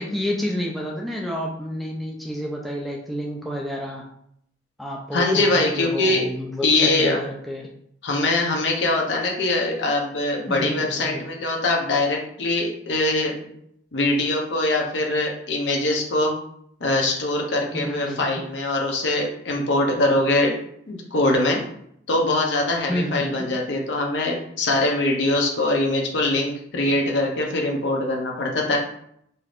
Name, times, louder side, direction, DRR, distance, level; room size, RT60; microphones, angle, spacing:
voice 1, 0.0-4.0 4.8-7.7 10.5-11.2 17.7-18.3 22.9-23.5, equal, ahead, -2 dB, 0.3 m, -29 dB
voice 2, 5.1-6.2 6.6-7.2 8.0-13.5 13.9-16.3 16.8-20.6 20.9-21.6 22.1-28.8, left 2 dB, 75° left, 0 dB, 0.7 m, -22 dB
3.3 x 2.7 x 2.4 m, 0.70 s
head